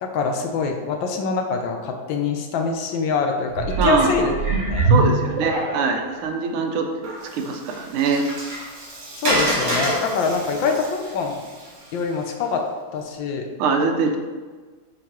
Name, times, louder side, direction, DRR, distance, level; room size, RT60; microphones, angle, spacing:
voice 1, 0.0-4.3 4.7-4.9 9.2-11.4 11.9-12.7 12.9-13.5, left 4 dB, 75° left, 4 dB, 1.3 m, -24 dB
sound 1, 3.5-6.1 6.7-6.8, right 3 dB, 50° right, 2.8 m, -22 dB
voice 2, 3.8-4.1 4.9-8.3 13.6-14.2, right 4 dB, 90° right, 4 dB, 1.6 m, -23 dB
Water, 7.0-12.4, right 1 dB, 70° right, 3.0 m, -28 dB
8.7 x 4.7 x 3.0 m, 1.4 s
omnidirectional pair, 2.3 m